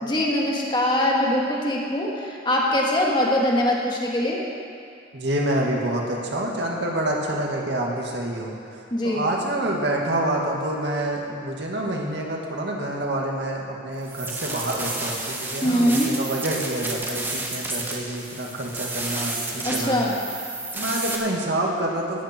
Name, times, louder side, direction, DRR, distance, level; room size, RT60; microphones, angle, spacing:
voice 1, 0.0-4.4 8.9-9.3 15.6-16.1 19.6-20.1, left 1 dB, 25° left, -2 dB, 2.0 m, -22 dB
voice 2, 5.1-20.2 20.5-22.2, right 1 dB, 65° right, -1 dB, 2.1 m, -27 dB
sound 1, 14.0-21.2, right 2 dB, 10° right, 1.4 m, -31 dB
17.0 x 12.0 x 4.5 m, 2.3 s
head